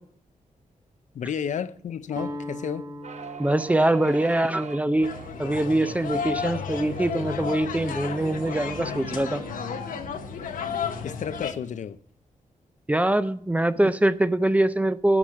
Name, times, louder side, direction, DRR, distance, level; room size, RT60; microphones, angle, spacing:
voice 1, 1.1-2.8 11.0-12.0, left 8 dB, 65° left, 0.5 m, -32 dB
Guitar, 2.1-8.1, equal, 30° right, 1.3 m, -42 dB
sound 1, 3.0-11.8, right 6 dB, 55° right, 0.8 m, -43 dB
voice 2, 3.4-5.1 5.4-9.4 12.9-15.2, right 1 dB, 10° right, 0.5 m, -23 dB
sound 2, 5.0-11.5, left 7 dB, 85° left, 1.0 m, -33 dB
12.0 x 4.9 x 7.2 m
wide cardioid pair, 120°, 14 cm